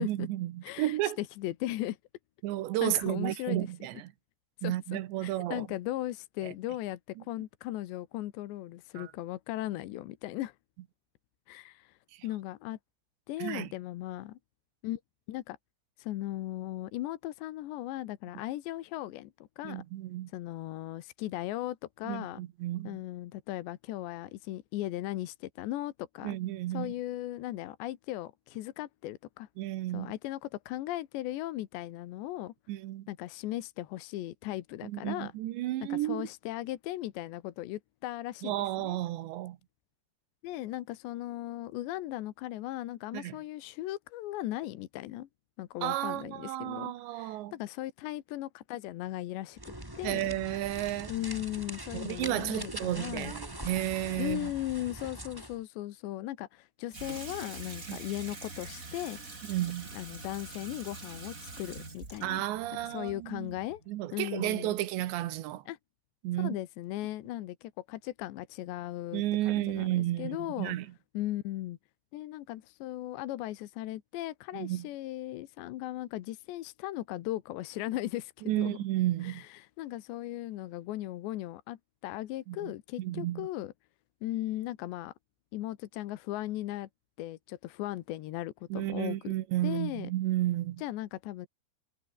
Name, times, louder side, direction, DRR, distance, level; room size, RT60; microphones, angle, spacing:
voice 1, 0.0-1.2 2.4-4.1 4.6-5.7 6.4-6.5 9.0-9.1 12.1-12.3 13.4-13.7 19.6-20.3 22.1-23.0 26.2-26.9 29.6-30.1 32.7-33.1 34.8-36.3 38.4-39.6 43.1-43.4 45.8-47.5 50.0-51.1 51.9-54.5 57.9-58.0 59.5-59.9 62.2-63.5 63.9-65.6 66.2-66.6 69.1-70.9 74.5-74.9 78.4-79.4 82.5-82.7 83.0-83.5 88.7-90.8, right 15 dB, 90° right, 3.5 m, -32 dB
voice 2, 0.6-2.0 2.8-3.7 4.6-10.6 11.5-12.0 12.2-12.8 13.3-14.4 14.8-15.0 15.3-15.6 16.0-19.8 20.3-22.4 22.9-26.4 26.7-29.5 29.9-32.5 33.1-35.3 35.9-39.0 40.4-45.3 45.6-50.3 51.1-53.3 54.2-59.2 59.9-62.4 62.8-63.8 64.1-64.8 65.7-65.8 66.4-70.8 71.2-71.8 72.1-78.8 79.2-83.7 84.2-85.1 85.5-86.9 87.2-89.3 89.6-90.1 90.8-91.5, left 15 dB, 80° left, 3.5 m, -37 dB
sound 1, 49.5-55.6, right 1 dB, 5° right, 3.5 m, -43 dB
Water tap faucet / Sink (filling or washing), 56.9-63.9, right 3 dB, 20° right, 3.4 m, -45 dB
omnidirectional pair, 5.0 m